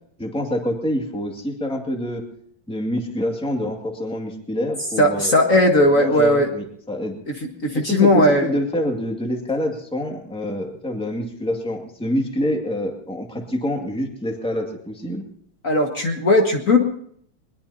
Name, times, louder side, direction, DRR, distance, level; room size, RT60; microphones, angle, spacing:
voice 1, 0.2-2.3 2.7-5.3 5.9-7.2 7.7-15.2, equal, 5° left, 2 dB, 2.1 m, -26 dB
voice 2, 5.0-6.5 7.6-8.5 15.6-16.8, left 1 dB, 45° left, 2 dB, 2.0 m, -17 dB
21.5 x 21.0 x 2.8 m, 0.64 s
omnidirectional pair, 2.1 m